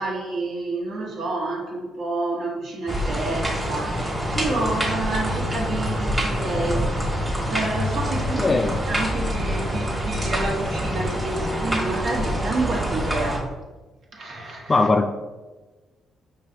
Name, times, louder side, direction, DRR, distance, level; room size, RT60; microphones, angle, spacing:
voice 1, 0.0-6.9 7.5-8.6 8.9-13.5 14.1-14.9, right 2 dB, 65° right, -1 dB, 1.0 m, -29 dB
sound 1, 2.9-13.4, equal, 20° right, 1.2 m, -26 dB
voice 2, 8.4-8.7 14.7-15.1, left 3 dB, 25° left, 6 dB, 0.3 m, -19 dB
5.3 x 3.0 x 2.8 m, 1.2 s
cardioid pair, 90°, 0 cm